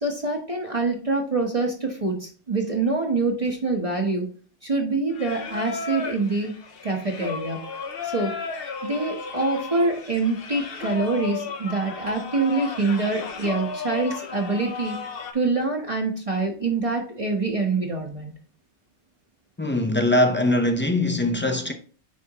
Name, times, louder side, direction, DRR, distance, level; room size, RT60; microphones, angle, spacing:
voice 1, 0.0-4.3 4.6-6.5 6.8-7.6 8.0-8.3 8.8-15.0 15.3-18.3, right 3 dB, 30° right, 1.0 m, -25 dB
Singing, 5.1-15.3, left 5 dB, 60° left, 0.9 m, -34 dB
voice 2, 19.6-21.7, left 1 dB, 15° left, 0.4 m, -21 dB
9.4 x 3.5 x 2.8 m
omnidirectional pair, 1.2 m